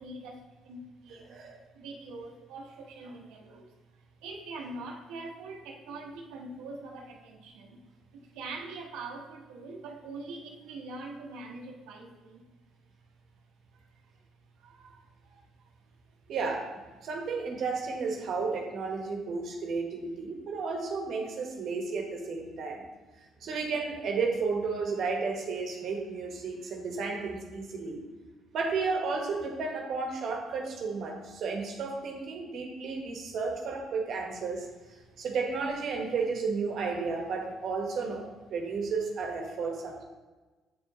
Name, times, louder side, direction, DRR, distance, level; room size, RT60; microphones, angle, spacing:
voice 1, 0.0-1.4 1.7-3.7 4.2-7.8 8.1-12.4 13.7-13.8 14.6-15.7, right 3 dB, 90° right, 1 dB, 1.0 m, -43 dB
voice 2, 16.3-22.8 23.4-28.0 28.5-34.7 35.2-40.0, right 4 dB, 60° right, 1 dB, 1.2 m, -33 dB
8.0 x 4.7 x 3.0 m, 1.2 s
cardioid pair, 105°, 0 cm